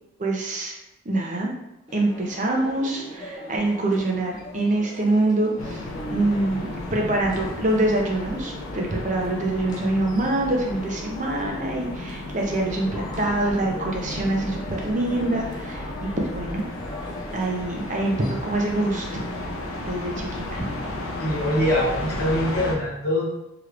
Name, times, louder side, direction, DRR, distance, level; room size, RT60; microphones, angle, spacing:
voice 1, 0.2-0.7 1.0-1.5 1.9-5.8 6.1-16.6 17.3-19.1 19.9-20.7, right 2 dB, 35° right, 0 dB, 0.6 m, -25 dB
sound 1, 1.9-21.5, left 1 dB, 20° left, 0.4 m, -41 dB
sound 2, 5.6-22.8, left 1 dB, 80° left, 0.5 m, -34 dB
voice 2, 21.2-23.3, equal, 50° left, -5 dB, 1.0 m, -23 dB
3.2 x 2.9 x 2.4 m, 0.89 s
head